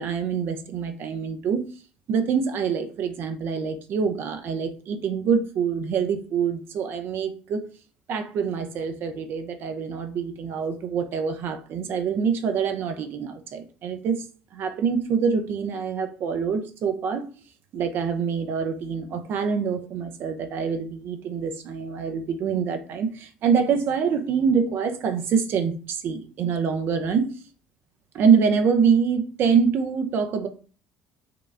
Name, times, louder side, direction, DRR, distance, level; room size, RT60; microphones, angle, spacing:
voice 1, 0.0-1.6 2.1-7.7 8.1-14.3 14.5-17.3 17.7-27.4 28.1-30.5, right 6 dB, 55° right, 0.7 m, -25 dB
4.8 x 2.4 x 3.3 m
hypercardioid pair, 65°, 4 cm